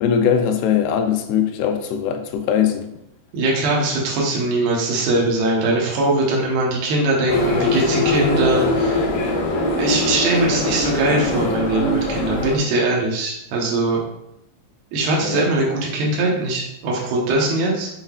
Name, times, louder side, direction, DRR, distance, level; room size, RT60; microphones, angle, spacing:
voice 1, 0.0-2.9 15.2-15.5, left 8 dB, 90° left, 6 dB, 2.7 m, -20 dB
voice 2, 3.3-9.0 9.8-14.0 14.9-17.9, right 2 dB, 85° right, -3 dB, 3.3 m, -21 dB
sound 1, 7.3-12.6, left 2 dB, 70° left, 3.1 m, -22 dB
7.7 x 5.6 x 2.4 m, 0.82 s
omnidirectional pair, 4.5 m